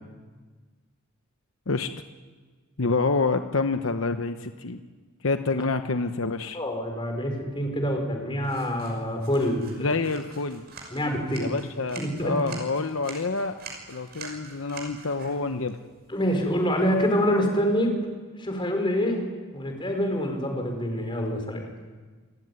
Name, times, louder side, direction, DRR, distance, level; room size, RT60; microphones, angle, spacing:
voice 1, 2.8-4.8 5.2-6.6 9.8-10.6 11.4-13.6 13.9-15.8, left 3 dB, 70° left, 8 dB, 1.0 m, -27 dB
voice 2, 6.5-9.8 10.9-11.5 12.0-12.3 16.1-18.0 18.4-19.3 19.5-21.6, equal, 25° left, 3 dB, 4.7 m, -26 dB
sound 1, 8.4-17.5, right 4 dB, 50° right, 6.3 m, -46 dB
28.0 x 15.5 x 9.6 m, 1.4 s
head